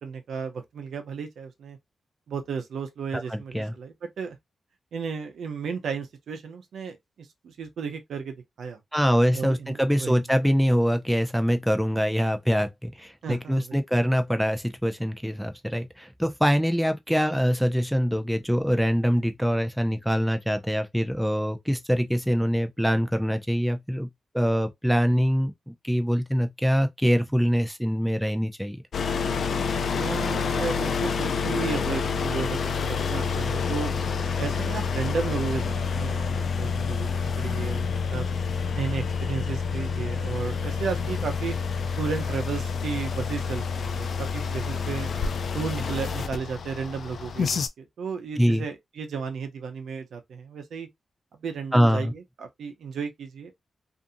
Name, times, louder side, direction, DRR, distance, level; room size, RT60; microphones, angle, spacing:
voice 1, 0.0-1.8 2.3-4.4 4.9-8.8 9.3-10.2 13.2-14.1 29.9-32.6 32.9-33.9 34.4-38.2 38.7-41.6 42.0-45.1 45.5-50.9 51.4-53.5, right 5 dB, 85° right, 0.6 m, -34 dB
voice 2, 3.1-3.7 8.9-24.1 24.3-28.8 48.4-48.6 51.7-52.1, equal, ahead, 0.5 m, -24 dB
sound 1, 28.9-47.7, left 5 dB, 65° left, 0.3 m, -28 dB
2.5 x 2.5 x 2.6 m
cardioid pair, 90°, 0 cm